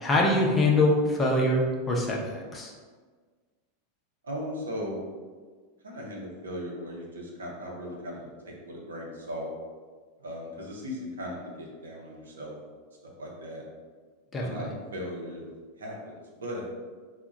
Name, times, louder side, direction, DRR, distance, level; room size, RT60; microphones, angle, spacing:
voice 1, 0.0-2.7 14.3-14.7, left 1 dB, 20° left, -2 dB, 0.6 m, -24 dB
voice 2, 4.2-5.0 5.8-9.5 10.2-12.5 13.2-13.6 14.4-15.5 15.8-16.7, equal, 75° right, -2 dB, 0.6 m, -37 dB
2.2 x 2.1 x 3.9 m, 1.5 s
figure-of-eight pair, 90°, 0 cm